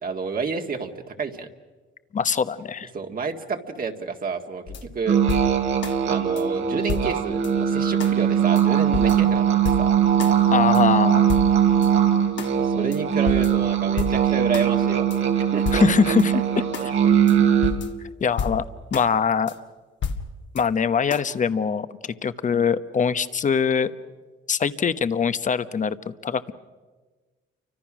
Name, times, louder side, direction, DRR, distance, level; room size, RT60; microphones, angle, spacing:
voice 1, 0.0-1.5 2.9-5.2 6.1-9.9 12.6-15.1 15.5-15.7, right 5 dB, 45° right, 4 dB, 1.9 m, -30 dB
voice 2, 2.1-2.9 10.5-11.3 15.7-16.3 18.2-18.6 18.9-19.5 20.5-23.9 24.5-26.5, left 6 dB, 40° left, 12 dB, 1.0 m, -23 dB
sound 1, 4.7-6.0 6.4-6.5 6.9-7.5 8.0-8.1 8.6-8.7 8.9-10.4 10.7-10.8 11.3-11.9 12.4-12.5 12.9-13.0 13.3-14.7 15.1-15.2 15.7-16.3 16.7-16.9 17.3-17.4 17.6-19.1 19.5-19.6 20.0-20.6 21.1-21.2, left 5 dB, 65° left, 1.9 m, -31 dB
sound 2, 5.1-17.7, right 9 dB, 80° right, 2.9 m, -20 dB
29.0 x 25.0 x 6.2 m, 1.3 s
cardioid pair, 90°, 20 cm